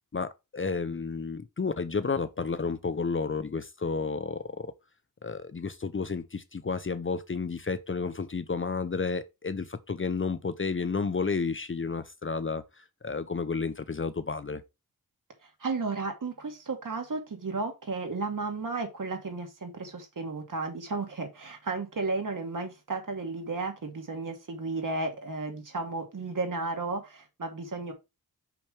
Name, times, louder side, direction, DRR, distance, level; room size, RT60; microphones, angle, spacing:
voice 1, 0.1-4.7 5.2-14.6, left 4 dB, 35° left, 0.7 m, -31 dB
voice 2, 15.4-27.9, right 3 dB, 55° right, 2.4 m, -33 dB
6.1 x 5.9 x 3.3 m
wide cardioid pair, 100°, 37 cm